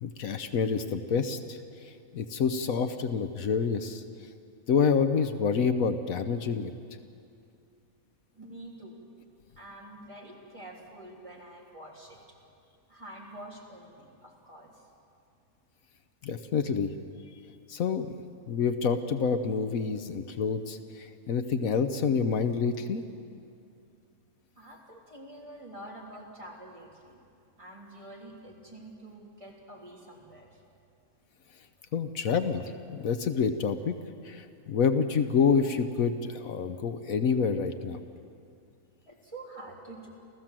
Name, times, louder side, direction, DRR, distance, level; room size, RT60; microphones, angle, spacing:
voice 1, 0.0-1.6 2.1-4.0 4.7-6.7 16.2-16.9 17.7-18.1 18.5-23.0 31.9-34.0 34.2-38.0, left 6 dB, 75° left, 9 dB, 1.3 m, -27 dB
voice 2, 8.3-9.0 9.5-12.4 12.9-14.8 24.6-27.2 27.6-30.6 34.6-34.8 39.0-40.1, right 1 dB, 20° right, -3 dB, 3.5 m, -47 dB
28.5 x 15.0 x 7.5 m, 2.5 s
omnidirectional pair, 1.5 m